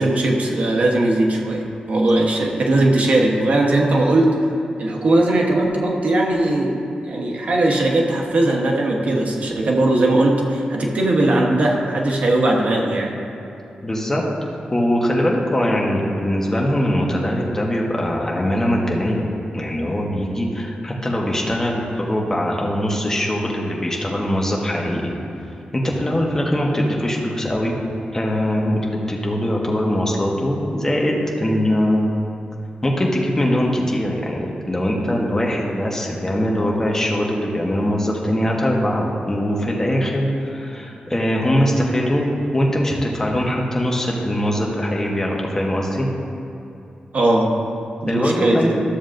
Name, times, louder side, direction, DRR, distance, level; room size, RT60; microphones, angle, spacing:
voice 1, 0.0-4.4 4.8-13.2 47.1-47.5 48.0-48.8, right 2 dB, 60° right, 0 dB, 1.1 m, -19 dB
voice 2, 13.8-14.2 14.7-19.2 19.5-25.1 25.7-27.8 28.1-32.1 32.8-42.3 42.5-46.1 48.1-48.8, equal, 15° left, -2 dB, 1.1 m, -21 dB
13.0 x 7.0 x 2.6 m, 2.9 s
wide cardioid pair, 120°, 3 cm